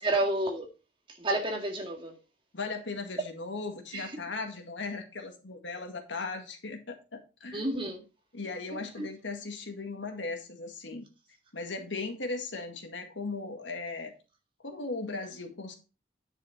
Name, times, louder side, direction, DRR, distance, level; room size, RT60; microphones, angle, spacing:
voice 1, 0.0-0.7 1.1-2.2 3.9-4.1 7.5-8.0 8.7-9.1, right 1 dB, 30° right, 2.0 m, -31 dB
voice 2, 2.5-7.8 8.3-11.1 11.5-14.1 14.6-15.7, left 3 dB, 85° left, 1.9 m, -37 dB
9.7 x 6.4 x 4.2 m
head